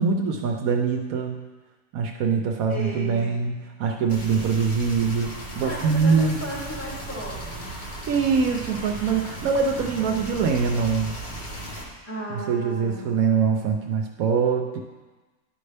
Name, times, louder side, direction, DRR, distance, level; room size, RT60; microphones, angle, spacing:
voice 1, 0.0-1.5 1.9-6.4 8.1-11.1 12.5-14.8, right 5 dB, 75° right, 3 dB, 1.0 m, -23 dB
voice 2, 2.7-3.3 5.6-7.7 12.0-13.1, right 1 dB, 10° left, -8 dB, 2.6 m, -35 dB
sound 1, 4.1-11.8, right 1 dB, 35° left, 1.2 m, -36 dB
11.0 x 5.3 x 3.3 m, 1.3 s
omnidirectional pair, 1.5 m